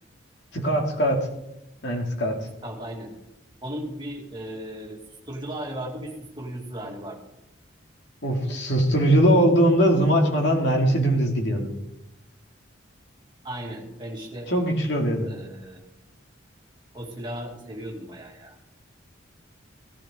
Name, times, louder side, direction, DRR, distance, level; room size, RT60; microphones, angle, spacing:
voice 1, 0.5-1.3 1.8-2.5 8.2-11.7 14.5-15.3, right 1 dB, 60° left, 1 dB, 2.6 m, -21 dB
voice 2, 2.6-3.1 3.6-5.0 5.3-7.2 13.4-14.5 15.2-15.8 16.9-18.5, right 1 dB, 25° right, -1 dB, 2.4 m, -36 dB
17.0 x 12.0 x 3.8 m, 0.87 s
head